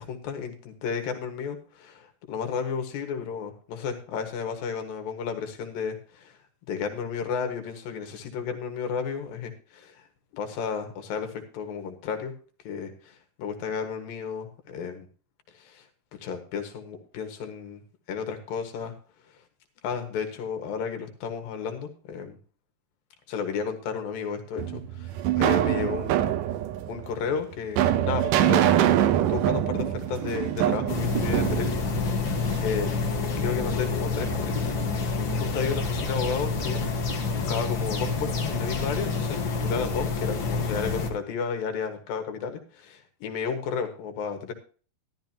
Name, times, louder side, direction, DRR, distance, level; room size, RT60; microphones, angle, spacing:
voice 1, 0.0-6.4 6.7-10.1 10.3-12.3 12.6-15.1 15.5-15.9 16.2-17.8 18.1-18.9 19.8-22.4 23.3-26.4 26.9-28.9 29.3-31.8 32.6-33.1 33.4-34.7 35.1-44.5, left 6 dB, 75° left, 6 dB, 3.4 m, -33 dB
sound 1, 24.6-32.7, right 11 dB, 75° right, 2.3 m, -24 dB
sound 2, 30.9-41.1, left 4 dB, 45° left, 1.7 m, -28 dB
13.0 x 13.0 x 2.9 m, 0.39 s
omnidirectional pair, 4.1 m